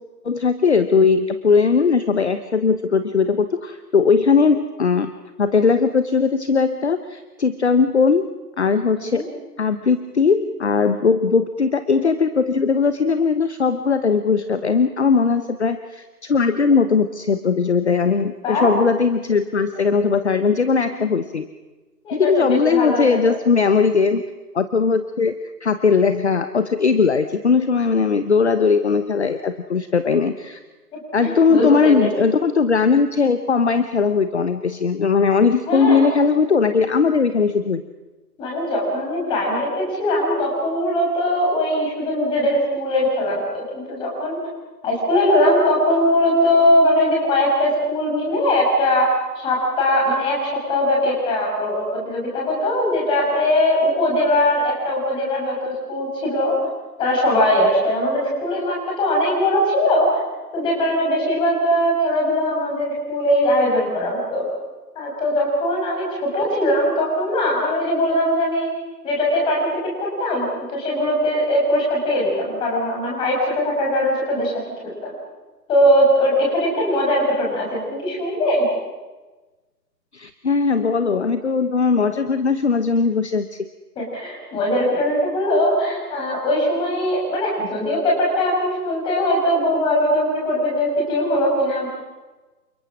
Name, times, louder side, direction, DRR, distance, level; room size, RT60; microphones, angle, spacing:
voice 1, 0.2-5.1 5.4-8.2 8.6-9.3 9.6-21.5 22.1-24.2 24.5-30.6 31.1-37.8 80.1-83.7, left 5 dB, 40° left, 11 dB, 1.1 m, -19 dB
voice 2, 22.0-23.2 31.2-31.9 35.5-36.0 38.4-44.4 44.8-49.1 49.4-50.4 50.7-56.5 57.0-60.2 60.5-64.4 64.9-68.7 69.0-69.7 70.0-74.5 74.8-75.1 75.7-78.7 84.0-91.9, left 1 dB, 10° left, -3 dB, 6.1 m, -20 dB
29.0 x 25.5 x 6.3 m, 1.2 s
figure-of-eight pair, 145°, 49 cm